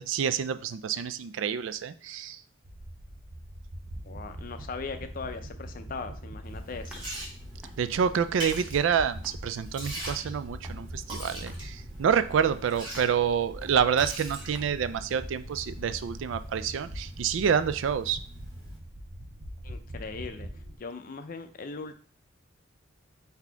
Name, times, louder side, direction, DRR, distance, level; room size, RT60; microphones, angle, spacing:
voice 1, 0.0-2.4 7.8-18.2, right 7 dB, 85° right, 13 dB, 0.3 m, -28 dB
sound 1, 2.6-20.8, equal, 50° right, 0.6 m, -42 dB
voice 2, 4.0-7.0 19.6-22.0, left 4 dB, 45° left, 8 dB, 0.5 m, -39 dB
Liquid, 6.4-18.8, right 1 dB, 25° right, 1.5 m, -44 dB
sound 2, 6.6-8.9 9.2-15.2, equal, 5° right, 0.8 m, -53 dB
4.1 x 2.8 x 4.5 m, 0.43 s
head